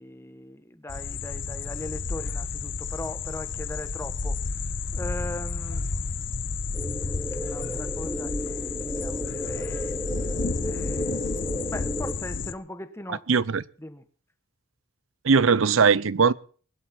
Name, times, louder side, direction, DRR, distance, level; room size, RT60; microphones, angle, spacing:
voice 1, 0.0-5.9 7.3-10.0 10.2-13.2 13.8-14.0, left 1 dB, 15° left, 1.3 m, -40 dB
sound 1, 0.9-12.5, left 4 dB, 60° left, 0.9 m, -31 dB
sound 2, 6.7-12.1, equal, 5° right, 2.4 m, -34 dB
voice 2, 13.1-13.6 15.2-16.3, right 5 dB, 80° right, 0.7 m, -20 dB
20.5 x 11.5 x 4.4 m
head